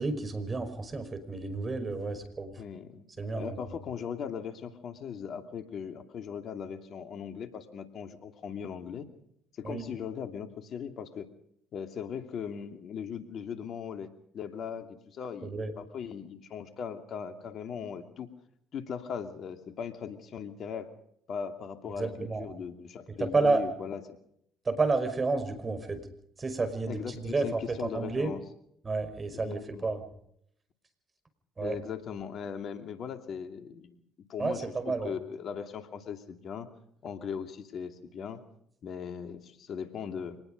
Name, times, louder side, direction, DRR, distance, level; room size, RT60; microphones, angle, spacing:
voice 1, 0.0-2.5 3.2-3.6 9.6-9.8 15.4-15.7 22.0-22.5 23.2-23.6 24.7-26.0 26.4-28.3 28.8-30.0 31.6-31.8 34.4-35.1, right 3 dB, 35° right, 10 dB, 5.3 m, -30 dB
voice 2, 2.6-9.1 9.6-11.3 11.7-18.3 18.7-20.9 21.3-24.2 26.9-28.4 29.3-29.9 31.6-34.0 34.3-36.7 37.0-38.4 38.8-40.4, left 7 dB, 60° left, 7 dB, 2.7 m, -39 dB
25.5 x 19.5 x 5.3 m, 0.71 s
hypercardioid pair, 55°, 0 cm